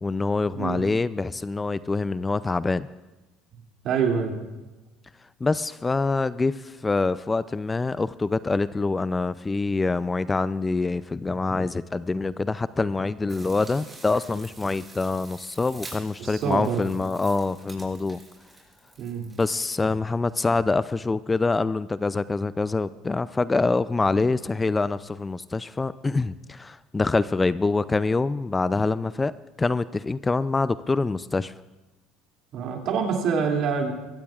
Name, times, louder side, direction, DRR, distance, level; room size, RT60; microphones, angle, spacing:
voice 1, 0.0-2.9 5.4-18.2 19.4-29.3 29.6-31.5, left 3 dB, 20° left, 16 dB, 0.4 m, -25 dB
voice 2, 0.5-0.8 3.8-4.5 16.2-16.8 19.0-19.3 32.5-33.9, right 6 dB, 60° right, 1 dB, 2.5 m, -26 dB
sound 1, 13.3-19.9, right 2 dB, 20° right, 5.8 m, -47 dB
22.5 x 16.0 x 2.4 m, 1.1 s
hypercardioid pair, 80°, 0 cm